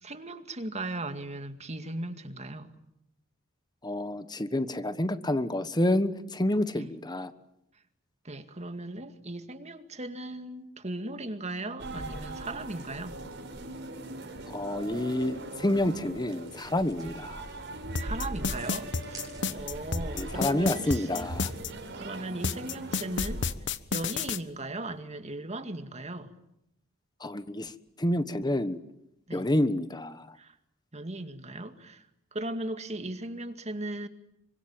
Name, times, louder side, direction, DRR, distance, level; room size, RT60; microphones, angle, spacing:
voice 1, 0.0-2.7 6.7-6.9 8.2-13.2 17.0-17.1 18.0-21.3 21.9-23.5 23.9-26.3 29.3-29.5 30.4-30.5 30.9-32.0 32.3-34.1, right 2 dB, 35° right, 2.2 m, -37 dB
voice 2, 3.8-7.3 14.5-17.4 20.2-21.5 27.2-27.7 28.0-28.8 29.3-30.3, left 1 dB, 20° left, 1.3 m, -28 dB
sound 1, 11.8-23.5, right 1 dB, 60° right, 5.6 m, -39 dB
sound 2, 14.6-19.8, right 3 dB, 20° right, 7.5 m, -53 dB
sound 3, 18.0-21.7 22.4-24.4, left 5 dB, 60° left, 1.2 m, -30 dB
27.0 x 25.0 x 8.8 m
head